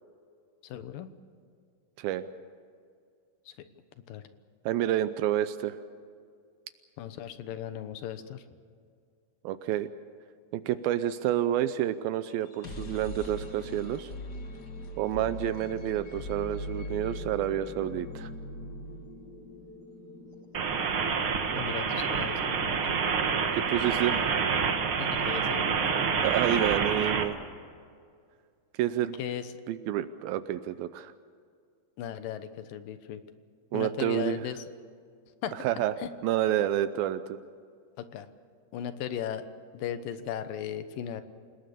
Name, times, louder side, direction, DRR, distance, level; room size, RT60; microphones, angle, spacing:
voice 1, 0.6-1.1 3.5-3.6 4.1-4.2 7.0-8.4 21.5-23.0 25.0-25.8 29.2-29.5 32.0-33.2 33.7-34.6 35.4-35.5 36.0-36.1 38.0-38.3 38.7-39.5 39.7-41.2, left 9 dB, 70° left, 10 dB, 2.7 m, -37 dB
voice 2, 4.7-5.8 9.4-9.9 10.5-14.1 15.0-18.3 21.5-21.7 23.5-24.3 26.2-27.4 28.7-29.2 29.7-31.1 33.7-34.4 35.6-35.9 36.2-37.4, right 12 dB, 80° right, 12 dB, 2.5 m, -29 dB
sound 1, 12.3-26.2, left 1 dB, 40° left, 1.6 m, -43 dB
sound 2, 20.5-27.2, right 6 dB, 50° right, 1.8 m, -28 dB
28.5 x 19.0 x 6.9 m, 2.2 s
omnidirectional pair, 4.3 m